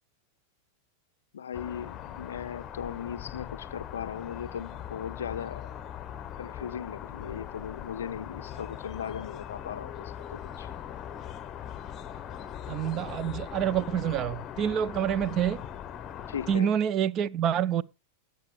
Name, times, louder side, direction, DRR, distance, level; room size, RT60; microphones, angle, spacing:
voice 1, 1.3-5.7 6.4-10.7 16.3-16.7, left 8 dB, 65° left, 0.5 m, -38 dB
sound 1, 1.5-16.6, left 10 dB, 30° left, 0.8 m, -40 dB
voice 2, 12.7-15.6 16.5-17.8, right 9 dB, 35° right, 0.5 m, -27 dB
18.5 x 6.7 x 3.0 m
figure-of-eight pair, 90°, 0 cm